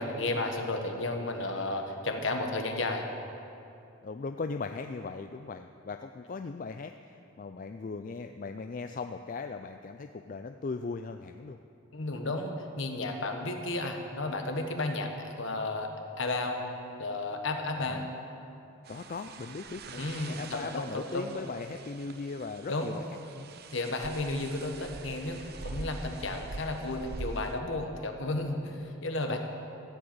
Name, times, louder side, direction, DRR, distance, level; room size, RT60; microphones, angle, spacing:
voice 1, 0.0-3.0 11.9-15.9 16.2-16.6 17.0-18.1 20.0-21.2 22.7-22.9 23.7-29.4, left 2 dB, 65° left, 4 dB, 1.4 m, -33 dB
voice 2, 4.0-11.6 17.9-18.1 18.9-23.0 23.3-23.5 29.3-29.4, left 4 dB, 40° left, 7 dB, 0.3 m, -38 dB
sound 1, 18.9-27.6, right 3 dB, 50° right, 0.6 m, -44 dB
13.5 x 7.9 x 8.7 m, 2.8 s
head